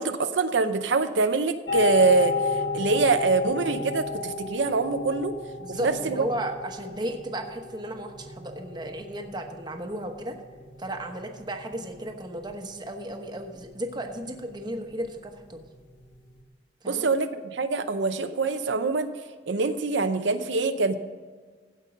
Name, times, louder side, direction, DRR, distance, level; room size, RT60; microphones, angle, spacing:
voice 1, 0.0-5.4 5.7-6.2 16.9-19.1 19.5-21.0, right 3 dB, 90° right, 9 dB, 0.6 m, -24 dB
sound 1, 1.7-16.4, left 4 dB, 85° left, 1.2 m, -34 dB
voice 2, 5.6-10.4 10.8-15.6 16.8-17.1, right 1 dB, 25° right, 4 dB, 1.0 m, -34 dB
15.5 x 5.4 x 5.1 m, 1.5 s
head